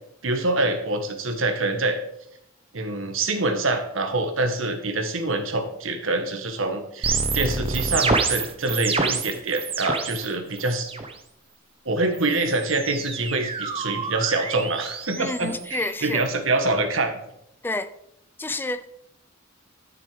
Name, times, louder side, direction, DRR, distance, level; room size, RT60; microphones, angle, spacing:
voice 1, 0.2-2.0 2.7-10.9 11.8-17.2, right 2 dB, 80° right, 1.6 m, -25 dB
sound 1, 7.0-10.3 10.6-11.1 12.1-16.3, right 4 dB, 30° right, 1.0 m, -28 dB
voice 2, 15.2-16.2 17.6-17.9 18.4-18.9, left 2 dB, 10° left, 0.4 m, -29 dB
12.5 x 6.9 x 5.0 m
head